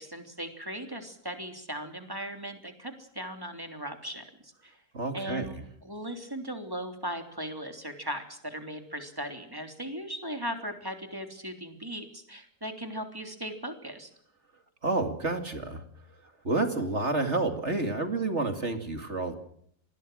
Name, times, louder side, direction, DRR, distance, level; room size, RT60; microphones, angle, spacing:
voice 1, 0.0-4.8 5.1-14.1, equal, 15° right, 6 dB, 3.3 m, -38 dB
voice 2, 4.9-5.6 14.8-15.8 16.4-19.3, right 3 dB, 40° right, 7 dB, 2.6 m, -29 dB
26.5 x 20.5 x 6.3 m, 0.66 s
omnidirectional pair, 1.8 m